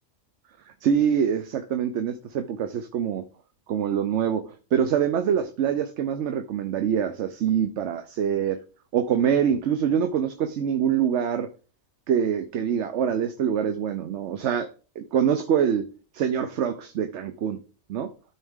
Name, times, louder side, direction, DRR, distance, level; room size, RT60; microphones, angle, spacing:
voice 1, 0.8-3.3 3.7-4.4 4.7-8.6 8.9-11.5 12.1-14.7 15.0-15.9 16.1-17.6 17.9-18.1, right 8 dB, 70° right, 1.0 m, -25 dB
12.5 x 4.6 x 3.6 m
omnidirectional pair, 1.2 m